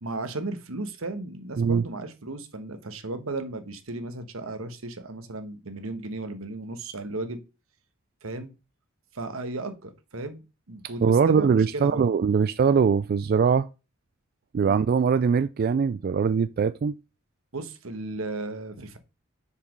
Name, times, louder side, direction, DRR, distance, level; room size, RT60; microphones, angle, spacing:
voice 1, 0.0-7.4 8.2-8.5 9.1-10.4 10.7-12.1 14.6-14.8 17.5-19.0, right 2 dB, 85° right, 1.2 m, -35 dB
voice 2, 11.0-13.7 14.5-16.9, right 6 dB, 45° right, 0.3 m, -22 dB
6.8 x 5.1 x 5.2 m
head